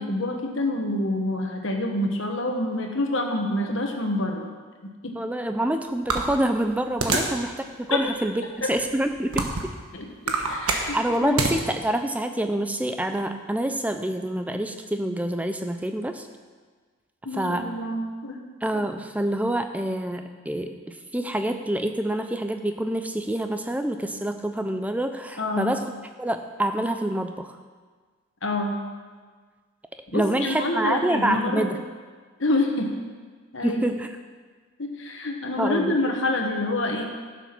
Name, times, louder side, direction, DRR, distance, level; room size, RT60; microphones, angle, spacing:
voice 1, 0.0-4.5 5.0-5.2 7.1-7.2 7.9-8.0 8.6-8.7 9.9-10.1 10.5-11.4 17.2-18.4 25.4-25.7 28.4-28.8 30.1-31.7 32.4-32.9 33.5-33.9 34.8-37.1, left 2 dB, 60° left, 2 dB, 1.5 m, -27 dB
voice 2, 5.1-7.5 7.9-9.7 10.9-16.3 17.3-17.7 18.6-25.9 26.2-27.6 30.1-31.8 33.6-34.1 35.6-35.9, right 1 dB, 5° right, 7 dB, 0.5 m, -27 dB
sound 1, 6.1-7.4 8.0-8.1 8.8-9.8 10.1-11.6, right 3 dB, 90° right, 1.3 m, -26 dB
11.0 x 7.1 x 6.0 m, 1.5 s
head